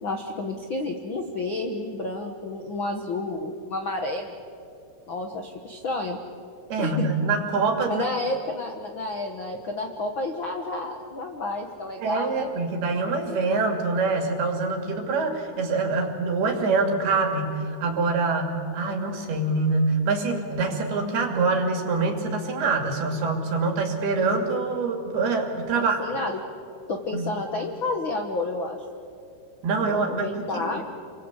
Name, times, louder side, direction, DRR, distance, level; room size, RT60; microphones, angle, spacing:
voice 1, 0.0-4.4 5.1-6.2 6.8-7.1 7.9-12.5 25.7-26.4 26.9-28.8 29.9-30.8, left 2 dB, 70° left, 4 dB, 1.1 m, -30 dB
voice 2, 6.7-8.0 12.0-26.0 27.1-27.3 29.6-30.6, right 3 dB, 70° right, 4 dB, 4.5 m, -25 dB
29.0 x 23.0 x 8.3 m, 2.5 s
omnidirectional pair, 4.7 m